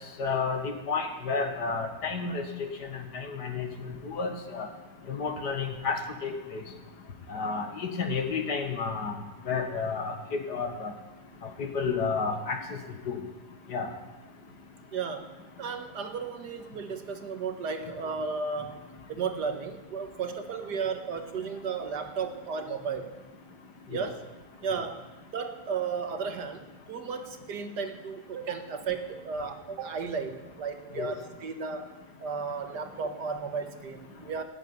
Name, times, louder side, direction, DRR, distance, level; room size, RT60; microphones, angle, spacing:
voice 1, 0.2-2.4 2.8-4.7 5.1-6.6 7.3-9.2 9.5-10.2 10.5-10.9 11.6-12.6 13.1-13.2 13.7-13.9 23.9-24.0 31.0-31.1, left 5 dB, 65° left, 5 dB, 2.1 m, -31 dB
voice 2, 14.9-18.8 19.1-23.1 23.9-24.2 24.6-25.1 25.3-31.9 32.2-34.4, right 5 dB, 65° right, 7 dB, 1.8 m, -34 dB
13.5 x 9.8 x 9.6 m, 1.1 s
omnidirectional pair, 1.9 m